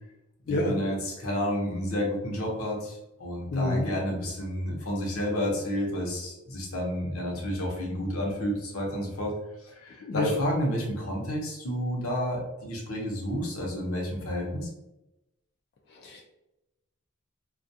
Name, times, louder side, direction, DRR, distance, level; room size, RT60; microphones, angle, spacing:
voice 1, 0.5-14.7, equal, 75° left, -2 dB, 0.8 m, -30 dB
voice 2, 3.5-3.9 10.0-10.3 15.9-16.2, left 2 dB, 50° left, 0 dB, 0.4 m, -28 dB
2.3 x 2.2 x 2.6 m, 0.94 s
head